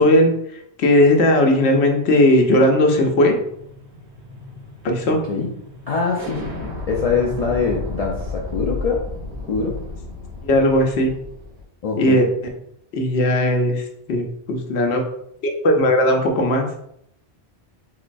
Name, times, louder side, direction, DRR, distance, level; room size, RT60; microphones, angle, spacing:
voice 1, 0.0-3.4 4.8-5.2 10.4-11.1 12.0-12.3 12.9-15.0 15.4-16.7, left 1 dB, 75° left, 2 dB, 1.0 m, -17 dB
sound 1, 3.1-11.6, left 2 dB, 85° right, 1.3 m, -34 dB
voice 2, 5.9-9.1 9.5-9.8 11.8-12.2, left 5 dB, 55° left, -2 dB, 0.4 m, -23 dB
3.8 x 3.0 x 2.5 m, 0.73 s
omnidirectional pair, 1.1 m